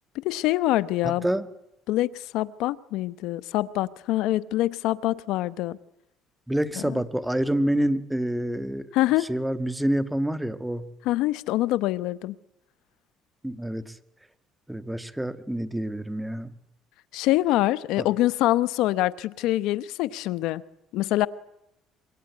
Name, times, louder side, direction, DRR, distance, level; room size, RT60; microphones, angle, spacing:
voice 1, 0.1-1.3 1.9-5.8 8.9-9.3 11.1-12.4 17.1-20.6 20.9-21.3, left 16 dB, 80° left, 17 dB, 1.0 m, -25 dB
voice 2, 6.5-8.9 9.2-10.9 13.4-14.0 14.7-16.5 18.0-18.1, right 1 dB, 5° right, 12 dB, 2.0 m, -27 dB
25.5 x 23.0 x 9.7 m, 0.86 s
supercardioid pair, 95°, 0 cm